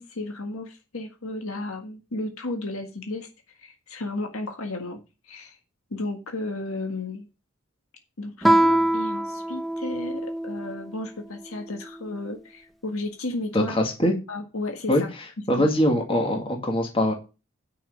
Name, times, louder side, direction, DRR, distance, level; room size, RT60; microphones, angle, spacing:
voice 1, 0.0-3.3 3.6-5.6 5.9-7.3 8.2-13.8 14.3-15.1 15.6-15.7, left 2 dB, 80° left, 4 dB, 1.7 m, -33 dB
Guitar, 8.4-10.9, right 1 dB, ahead, 0.8 m, -23 dB
voice 2, 13.5-14.1 14.9-15.0 15.5-17.1, left 1 dB, 25° left, 2 dB, 1.9 m, -22 dB
9.4 x 5.9 x 6.4 m, 0.30 s
head